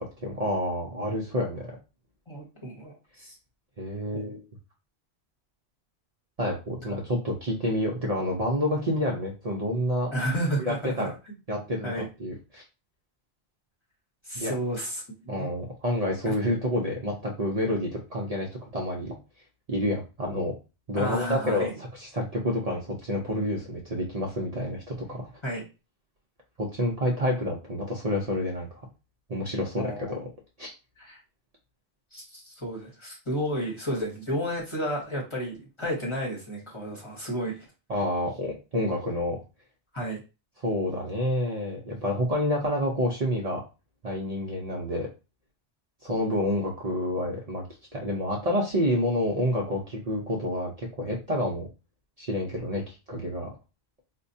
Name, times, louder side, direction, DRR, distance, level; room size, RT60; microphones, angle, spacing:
voice 1, 0.2-1.8 3.8-4.4 6.4-10.1 10.6-11.1 11.5-12.6 14.4-14.5 15.3-19.2 19.7-20.5 20.9-25.3 26.6-28.7 29.3-30.2 30.6-30.7 37.9-39.4 40.6-43.6 44.0-45.1 46.0-47.6 47.9-51.7 52.2-53.5, left 1 dB, 45° right, -2 dB, 0.6 m, -28 dB
voice 2, 2.3-3.3 4.1-4.4 6.9-7.0 10.1-11.1 11.8-12.1 14.2-15.5 16.2-16.3 21.0-21.7 25.4-25.6 29.8-30.2 31.0-31.2 32.1-37.6 39.9-40.2, equal, 30° left, -3 dB, 1.0 m, -32 dB
4.3 x 2.2 x 2.6 m, 0.30 s
omnidirectional pair, 1.1 m